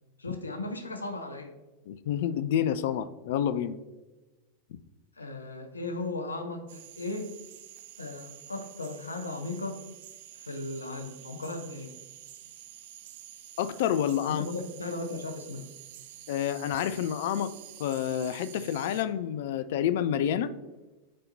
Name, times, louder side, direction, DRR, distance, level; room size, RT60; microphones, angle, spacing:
voice 1, 0.2-1.5 5.2-7.3 8.0-9.8 10.4-12.0 14.3-15.7, left 2 dB, 75° left, 6 dB, 0.8 m, -36 dB
voice 2, 1.9-3.8 13.6-14.5 16.3-17.5 17.8-20.5, left 9 dB, 55° left, 14 dB, 0.4 m, -28 dB
sound 1, 6.7-19.0, right 12 dB, 55° right, 0.5 m, -49 dB
9.9 x 4.2 x 2.7 m, 1.1 s
figure-of-eight pair, 90°, 0 cm